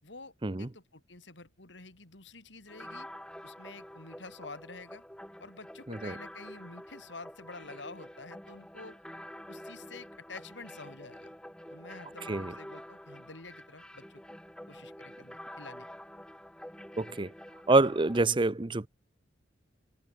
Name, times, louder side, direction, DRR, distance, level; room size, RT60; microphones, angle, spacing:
voice 1, 0.0-3.1 3.4-5.0 5.4-9.0 9.5-11.4 11.7-14.2 14.7-15.9, left 3 dB, 70° left, 4.1 m, -49 dB
sound 1, 2.7-18.2, equal, 5° left, 2.1 m, -48 dB
voice 2, 17.0-17.3 17.7-18.9, right 3 dB, 25° right, 0.7 m, -26 dB
head